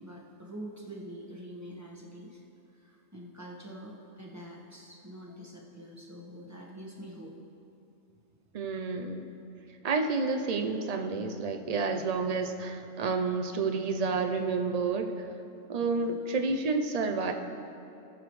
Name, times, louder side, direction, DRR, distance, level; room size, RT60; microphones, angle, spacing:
voice 1, 0.0-2.4 2.7-7.3 15.8-16.2, equal, 15° right, -2 dB, 1.1 m, -45 dB
voice 2, 8.5-9.2 9.8-15.3 15.7-17.3, right 4 dB, 65° right, 5 dB, 0.4 m, -30 dB
19.5 x 6.9 x 3.2 m, 2.7 s
omnidirectional pair, 1.4 m